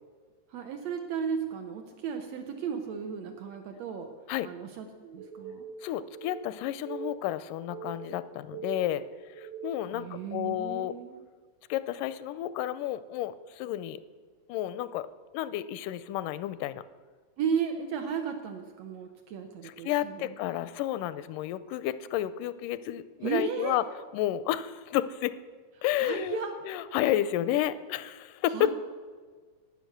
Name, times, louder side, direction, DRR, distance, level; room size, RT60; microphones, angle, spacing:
voice 1, 0.5-4.1 4.4-5.7 9.9-11.2 17.4-20.3 23.2-23.8 26.0-26.9 28.5-28.7, right 7 dB, 70° right, 5 dB, 1.7 m, -34 dB
sound 1, 5.2-10.0, right 7 dB, 85° right, 2.4 m, -43 dB
voice 2, 5.8-9.1 9.4-10.9 11.7-14.0 14.5-15.1 15.3-16.8 19.6-23.8 24.1-25.4 25.8-26.4 26.7-28.7, left 13 dB, 85° left, 15 dB, 2.1 m, -31 dB
11.5 x 9.3 x 6.5 m, 1.5 s
omnidirectional pair, 3.7 m